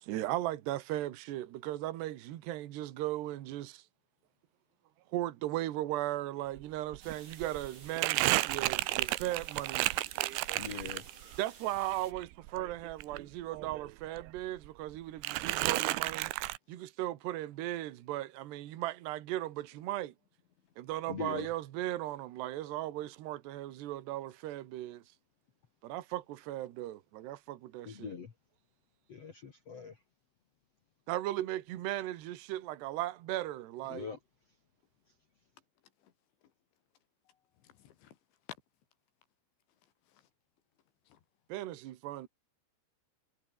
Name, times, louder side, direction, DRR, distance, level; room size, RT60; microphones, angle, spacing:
voice 1, 0.0-3.8 5.1-9.9 11.4-16.3 16.7-20.1 20.8-25.0 25.8-28.2 31.1-34.1 41.5-42.3, right 15 dB, 70° right, 3.5 m, -37 dB
Crumpling crinkling, 6.6-6.7 6.9-11.4 11.8-13.9 14.2-14.9 15.2-16.6, right 19 dB, 85° right, 3.3 m, -33 dB
sound 1, 7.0-12.1, right 6 dB, 45° right, 5.3 m, -54 dB
voice 2, 10.5-11.0 21.1-21.5 27.9-28.3 29.1-29.9 33.9-34.2, left 6 dB, 45° left, 2.5 m, -41 dB
voice 3, 37.3-38.2 39.8-40.3 41.1-41.2, left 10 dB, 80° left, 4.7 m, -65 dB
omnidirectional pair, 5.2 m